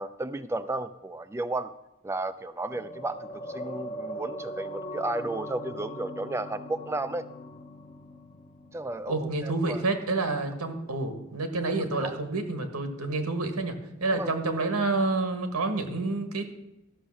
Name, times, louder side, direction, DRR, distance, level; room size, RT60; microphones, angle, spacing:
voice 1, 0.0-1.7 2.0-7.2 8.7-9.8 11.7-12.2 14.1-14.3, right 2 dB, 10° right, 10 dB, 0.3 m, -33 dB
sound 1, 2.7-11.3 11.6-11.7, equal, 35° left, 0.8 m, -41 dB
voice 2, 9.1-16.4, right 3 dB, 90° right, 7 dB, 1.5 m, -29 dB
13.0 x 6.5 x 6.3 m, 0.94 s
head